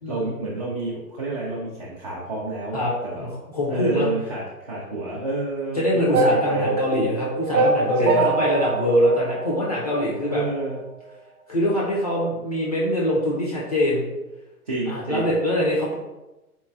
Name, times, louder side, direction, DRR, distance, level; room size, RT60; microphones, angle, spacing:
voice 1, 0.1-3.2 3.7-6.8 8.0-8.3 10.2-10.8 14.7-15.3, right 2 dB, 25° right, -6 dB, 0.4 m, -29 dB
voice 2, 3.2-4.1 5.7-10.4 11.5-14.1 14.9-16.0, left 1 dB, 25° left, -5 dB, 0.4 m, -23 dB
sound 1, 6.1-10.3, right 3 dB, 75° right, 0.7 m, -24 dB
4.0 x 3.0 x 2.3 m, 1.0 s
figure-of-eight pair, 120°, 46 cm